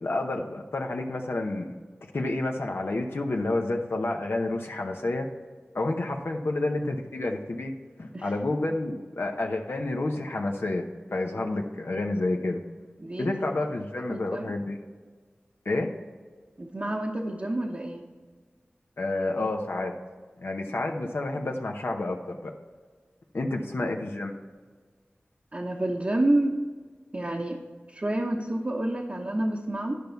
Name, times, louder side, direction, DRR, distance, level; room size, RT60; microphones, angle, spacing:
voice 1, 0.0-1.8 2.1-5.3 5.7-7.7 8.0-10.9 11.1-12.6 13.2-14.8 15.6-15.9 19.0-19.9 20.4-22.5 23.3-24.3, left 2 dB, 75° left, 2 dB, 0.8 m, -29 dB
voice 2, 14.0-14.5 16.6-18.0 25.5-26.6 27.1-27.6 27.9-30.0, right 1 dB, 40° right, -1 dB, 0.9 m, -28 dB
11.0 x 5.4 x 4.5 m, 1.5 s
wide cardioid pair, 50°, 4 cm